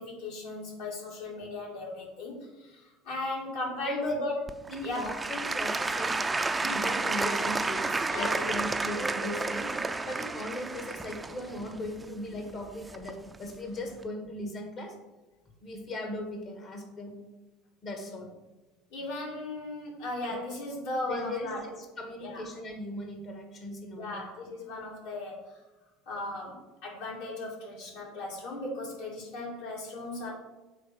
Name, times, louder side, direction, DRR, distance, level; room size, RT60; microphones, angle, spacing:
voice 1, 0.0-4.4 4.8-5.1 8.1-8.5 9.1-9.2 18.9-21.7 22.2-22.5 24.0-25.6 26.1-30.3, left 2 dB, 65° left, -3 dB, 2.6 m, -37 dB
voice 2, 3.8-4.2 4.7-6.2 6.6-9.7 10.0-14.9 15.6-17.1 17.8-18.3 21.1-24.3, left 1 dB, 50° left, 3 dB, 1.6 m, -38 dB
Applause / Crowd, 4.5-13.4 14.0-14.1, right 3 dB, 15° right, 0.4 m, -31 dB
7.5 x 3.3 x 6.0 m, 1.1 s
figure-of-eight pair, 70°, 0 cm